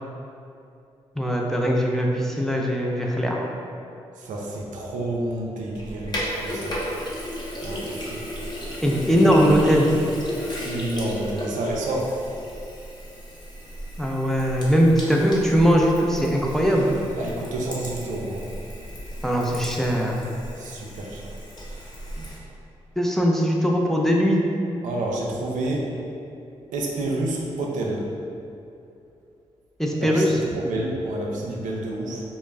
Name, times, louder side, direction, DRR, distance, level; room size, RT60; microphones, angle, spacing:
voice 1, 1.2-3.4 8.8-9.9 14.0-17.0 19.2-20.2 23.0-24.4 29.8-30.4, equal, 5° left, -1 dB, 0.4 m, -20 dB
voice 2, 4.2-6.8 7.6-8.2 9.4-9.5 10.6-12.1 17.2-18.4 20.6-21.2 24.8-25.9 26.7-28.1 30.0-32.2, right 2 dB, 70° right, -2 dB, 0.4 m, -29 dB
Sink (filling or washing), 5.7-22.4, equal, 35° left, 0.7 m, -34 dB
2.2 x 2.0 x 3.4 m, 2.6 s
hypercardioid pair, 40°, 13 cm